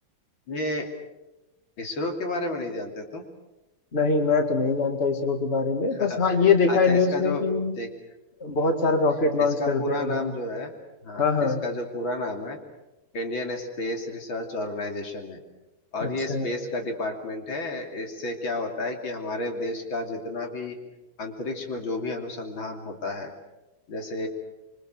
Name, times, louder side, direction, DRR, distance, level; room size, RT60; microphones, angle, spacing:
voice 1, 0.5-0.9 1.8-3.2 6.0-6.2 6.7-7.4 7.8-7.9 9.4-10.7 11.0-12.6 13.1-15.4 15.9-20.8 21.2-23.3 23.9-24.3, left 2 dB, 85° left, 3 dB, 3.7 m, -31 dB
voice 2, 3.9-7.7 8.4-10.3 11.2-11.6 16.0-16.5, left 4 dB, 30° left, 5 dB, 2.4 m, -23 dB
26.0 x 24.5 x 6.6 m, 1.0 s
omnidirectional pair, 2.1 m